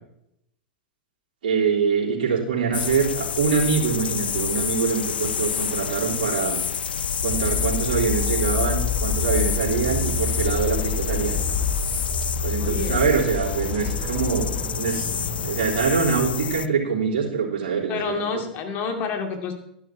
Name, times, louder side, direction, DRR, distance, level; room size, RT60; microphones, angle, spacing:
voice 1, 1.4-6.6 7.2-11.4 12.4-14.5 14.7-15.1 15.4-18.2, right 6 dB, 60° right, -3 dB, 3.5 m, -24 dB
sound 1, 2.7-16.7, left 7 dB, 75° left, 0.4 m, -28 dB
sound 2, 7.2-16.4, left 5 dB, 15° right, 3.4 m, -28 dB
voice 2, 12.6-13.1 17.9-19.5, left 5 dB, 40° left, 4 dB, 2.4 m, -29 dB
12.0 x 11.0 x 4.5 m, 0.77 s
figure-of-eight pair, 100°, 5 cm